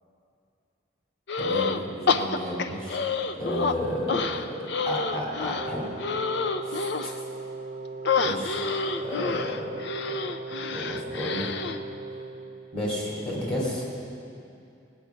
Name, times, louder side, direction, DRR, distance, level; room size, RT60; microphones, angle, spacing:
sound 1, 1.3-1.8 2.1-3.8 4.1-7.2 8.0-11.8, left 4 dB, 65° left, 0.5 m, -28 dB
voice 1, 1.4-3.0 3.4-4.5 4.9-5.9 6.6-7.1 8.2-8.6 9.0-9.8 10.7-11.5 12.7-13.8, left 1 dB, 35° left, -5 dB, 2.7 m, -31 dB
Wind instrument woodwind instrument, 5.5-12.8, right 3 dB, 40° right, 0.6 m, -38 dB
19.0 x 8.4 x 5.8 m, 2.6 s
head